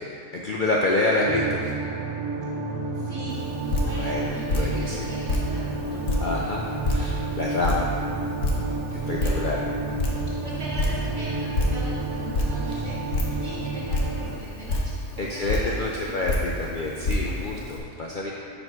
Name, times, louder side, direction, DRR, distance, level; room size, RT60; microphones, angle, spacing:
voice 1, 0.0-1.7 3.9-4.3 4.5-5.2 6.2-7.9 9.1-9.6 15.2-18.3, left 2 dB, 75° left, -3 dB, 0.4 m, -27 dB
sound 1, 1.2-14.4, right 3 dB, 85° right, 1.2 m, -31 dB
voice 2, 2.9-6.5 8.9-9.3 10.4-16.1, right 2 dB, 55° right, -11 dB, 1.4 m, -40 dB
Drip, 3.3-17.8, left 1 dB, 60° left, 1.2 m, -29 dB
5.3 x 4.5 x 5.8 m, 2.7 s
omnidirectional pair, 1.5 m